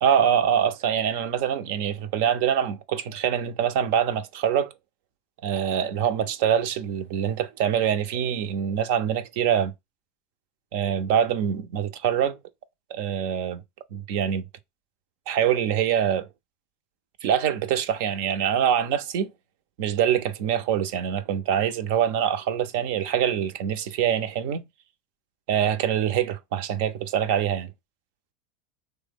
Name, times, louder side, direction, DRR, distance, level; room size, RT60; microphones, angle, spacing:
voice 1, 0.0-4.7 5.4-9.7 10.7-12.4 12.9-13.6 13.9-14.4 15.3-16.3 17.2-19.3 19.8-24.6 25.5-27.7, right 9 dB, 70° right, 0.4 m, -24 dB
3.2 x 2.1 x 3.5 m
hypercardioid pair, 95°, 0 cm